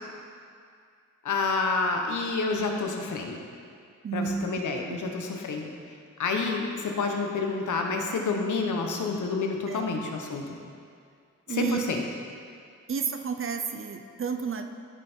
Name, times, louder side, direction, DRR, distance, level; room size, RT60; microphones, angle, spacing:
voice 1, 1.2-3.4 4.1-5.7 6.2-10.6 11.5-12.0, left 4 dB, 75° left, 2 dB, 1.1 m, -29 dB
voice 2, 4.0-4.5 4.9-5.1 9.7-10.0 11.5-11.8 12.9-14.6, right 6 dB, 45° right, 7 dB, 0.7 m, -31 dB
13.0 x 5.5 x 4.5 m, 2.3 s
cardioid pair, 100°, 31 cm